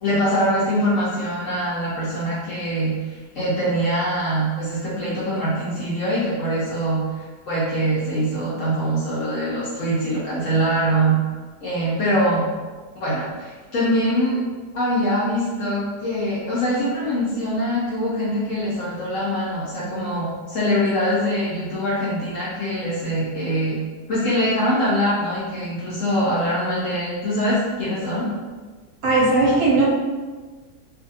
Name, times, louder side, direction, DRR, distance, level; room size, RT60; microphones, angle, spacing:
voice 1, 0.0-11.1 11.6-12.4 13.0-14.4 14.7-23.8 24.1-28.3, equal, 65° left, -8 dB, 0.8 m, -23 dB
voice 2, 29.0-29.9, right 2 dB, 65° right, -5 dB, 1.0 m, -17 dB
2.6 x 2.5 x 2.7 m, 1.4 s
omnidirectional pair, 1.8 m